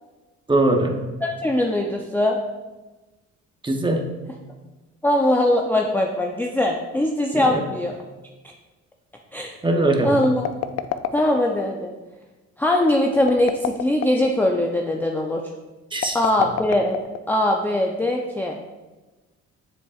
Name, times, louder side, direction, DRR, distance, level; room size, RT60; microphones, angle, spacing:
voice 1, 0.5-1.0 3.6-4.1 7.3-7.6 9.6-10.2 15.9-16.2, right 2 dB, 15° right, 3 dB, 0.9 m, -21 dB
voice 2, 1.2-2.4 5.0-7.9 9.3-9.5 10.0-10.5 11.1-11.9 12.6-15.4 16.1-17.0 17.3-18.6, left 1 dB, 5° left, 0 dB, 0.5 m, -21 dB
sound 1, 10.2-11.6 13.2-14.3 15.9-17.5, left 10 dB, 60° left, 0.4 m, -28 dB
7.3 x 7.0 x 2.4 m, 1.2 s
cardioid pair, 90°, 30 cm